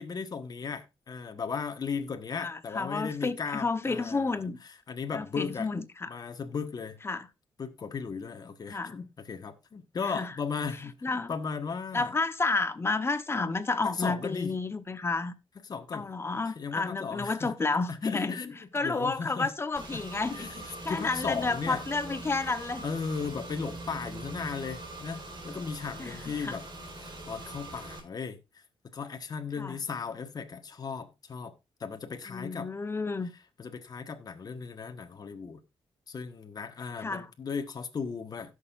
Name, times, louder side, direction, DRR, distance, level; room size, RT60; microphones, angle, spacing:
voice 1, 0.0-5.7 6.1-7.0 7.6-12.1 13.8-14.6 15.6-16.1 16.4-17.5 17.9-19.5 19.9-20.0 20.3-21.8 22.8-26.7 27.0-31.5 31.8-32.7 33.6-35.6 36.1-38.5, left 5 dB, 45° left, 1.4 m, -36 dB
voice 2, 2.4-4.6 5.1-6.1 7.0-7.3 8.7-8.9 10.1-10.3 11.0-11.3 11.9-15.3 15.9-18.4 18.7-20.5 20.8-22.8 26.0-26.2 26.4-26.6 29.6-29.8 32.3-33.3 37.0-37.3, left 3 dB, 25° left, 1.1 m, -31 dB
Car / Engine, 19.7-28.0, right 2 dB, 50° right, 4.4 m, -42 dB
17.0 x 6.7 x 2.6 m
cardioid pair, 100°, 9 cm